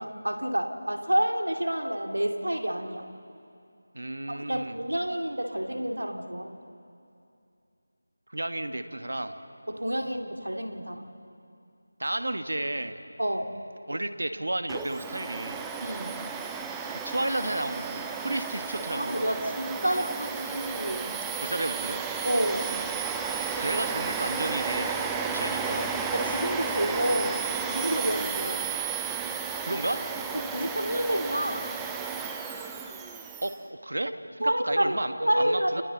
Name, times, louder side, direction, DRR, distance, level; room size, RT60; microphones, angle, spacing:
voice 1, 0.0-3.1 4.3-6.6 9.7-11.1 13.2-13.6 15.8-16.2 18.9-21.2 22.2-22.8 26.1-28.7 30.3-31.7 34.4-35.8, right 1 dB, 90° right, 3 dB, 2.3 m, -29 dB
voice 2, 3.9-4.8 8.3-9.3 12.0-13.0 13.9-15.7 16.9-19.3 21.4-22.0 23.5-24.9 25.3-25.9 29.6-30.0 33.4-35.8, right 1 dB, 75° right, 8 dB, 1.5 m, -32 dB
Domestic sounds home sounds, 14.7-33.6, right 6 dB, 5° right, 0.6 m, -33 dB
29.0 x 28.5 x 4.0 m, 2.5 s
figure-of-eight pair, 165°, 0 cm